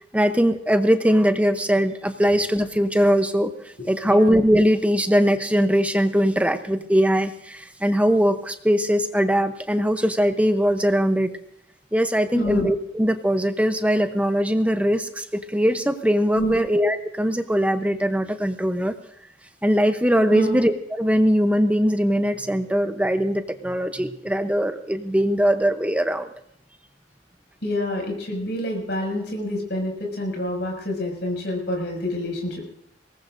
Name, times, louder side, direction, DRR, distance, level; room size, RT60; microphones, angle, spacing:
voice 1, 0.1-3.5 3.9-11.3 11.9-18.9 19.6-26.3, equal, 5° right, 8 dB, 0.7 m, -21 dB
voice 2, 4.0-4.3 12.3-12.7 16.4-16.6 20.3-20.6 27.6-32.7, left 1 dB, 60° left, 1 dB, 6.2 m, -27 dB
22.5 x 19.0 x 2.6 m, 0.75 s
head